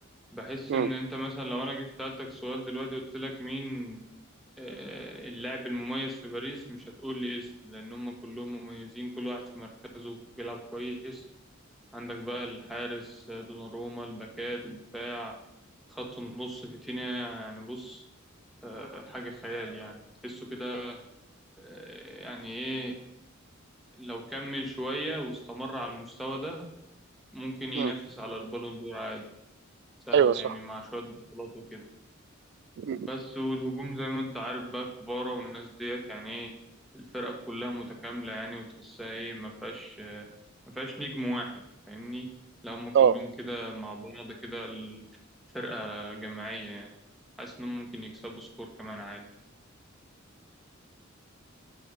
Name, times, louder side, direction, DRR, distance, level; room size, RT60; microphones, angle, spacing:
voice 1, 0.3-4.0 4.6-11.2 11.9-15.3 15.9-18.0 18.6-21.0 21.6-23.0 24.0-26.7 27.3-29.2 30.1-31.8 33.0-36.5 36.9-40.2 40.7-41.5 41.9-42.3 42.6-45.0 45.5-46.9 47.4-49.2, equal, ahead, -1 dB, 1.4 m, -37 dB
voice 2, 30.1-30.5 32.8-33.0 42.9-43.1, right 8 dB, 55° right, 19 dB, 0.3 m, -22 dB
7.7 x 5.0 x 5.3 m, 0.87 s
head